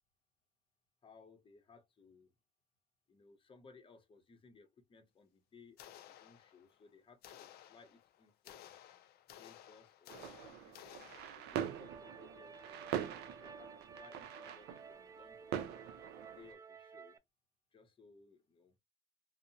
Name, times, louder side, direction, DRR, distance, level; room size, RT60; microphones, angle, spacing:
voice 1, 1.0-2.3 3.1-8.7 9.3-11.1 11.3-15.6 16.3-17.2 17.7-18.8, left 4 dB, 30° left, 0.7 m, -62 dB
sound 1, 5.8-6.8 7.2-11.7, left 11 dB, 70° left, 0.4 m, -56 dB
sound 2, 10.1-16.6, right 9 dB, 85° right, 0.4 m, -43 dB
sound 3, 11.5-17.2, right 5 dB, 20° right, 0.3 m, -54 dB
2.7 x 2.0 x 2.6 m
cardioid pair, 110°, 17 cm